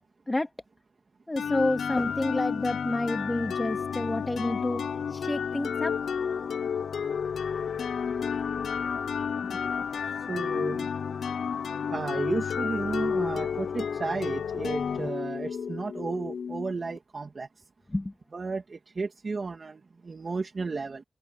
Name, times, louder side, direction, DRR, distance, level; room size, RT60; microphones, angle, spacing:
voice 1, 1.3-4.8 5.1-5.9 17.9-18.1, left 1 dB, 20° left, 2.3 m, -29 dB
sound 1, 1.4-17.0, left 6 dB, 90° left, 0.6 m, -31 dB
voice 2, 10.3-10.9 11.9-17.5 18.3-21.0, right 4 dB, 55° right, 2.3 m, -33 dB
open air
cardioid pair, 70°, 0 cm